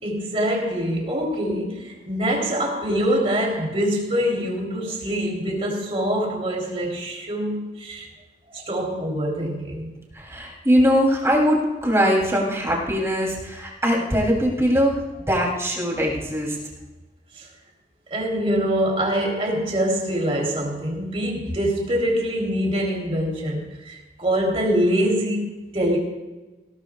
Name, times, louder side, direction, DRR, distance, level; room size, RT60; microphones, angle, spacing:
voice 1, 0.0-8.1 8.5-9.9 17.4-17.5 18.1-26.0, equal, 35° right, 3.3 m, -24 dB
voice 2, 10.1-15.0 15.3-16.6, equal, 15° right, 3.1 m, -21 dB
19.0 x 18.0 x 2.4 m
head